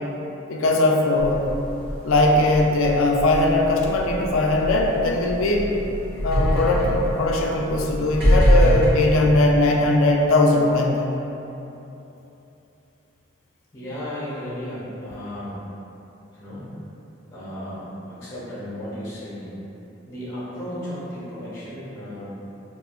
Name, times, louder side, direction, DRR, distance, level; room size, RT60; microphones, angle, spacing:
voice 1, 0.5-1.5 2.0-5.8 6.2-11.1, left 2 dB, 90° left, 0 dB, 0.4 m, -20 dB
sound 1, 1.2-8.9, equal, 50° right, 1.0 m, -24 dB
voice 2, 13.7-15.5 16.3-16.7 17.3-19.5 20.1-22.3, equal, 20° left, -9 dB, 1.1 m, -34 dB
3.6 x 2.6 x 2.4 m, 3.0 s
head